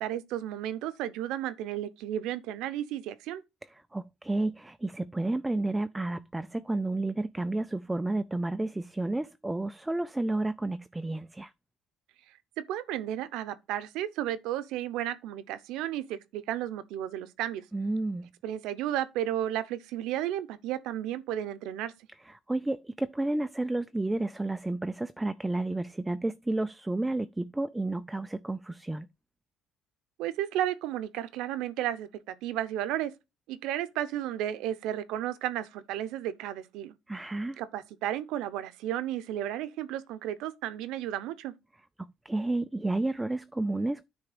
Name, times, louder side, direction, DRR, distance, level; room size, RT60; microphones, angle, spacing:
voice 1, 0.0-3.4 12.6-17.6 18.4-21.9 30.2-33.1 33.5-36.9 37.6-41.5, right 12 dB, 85° right, 0.8 m, -33 dB
voice 2, 3.9-11.5 17.7-18.3 22.2-29.1 37.1-37.6 42.0-44.0, right 2 dB, 10° right, 0.3 m, -31 dB
9.7 x 3.5 x 5.0 m
cardioid pair, 125°, 0 cm